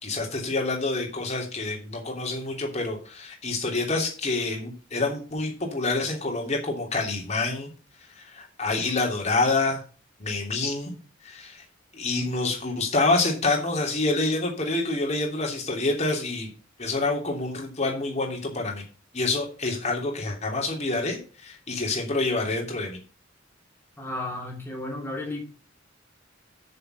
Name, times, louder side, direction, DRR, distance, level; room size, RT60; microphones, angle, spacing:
voice 1, 0.0-7.7 8.1-9.8 10.2-10.9 11.2-11.6 11.9-16.5 16.8-18.8 19.1-23.0, left 3 dB, 35° left, 0 dB, 3.0 m, -27 dB
voice 2, 24.0-25.4, left 2 dB, 10° left, -1 dB, 2.7 m, -33 dB
7.1 x 6.7 x 7.9 m, 0.37 s
head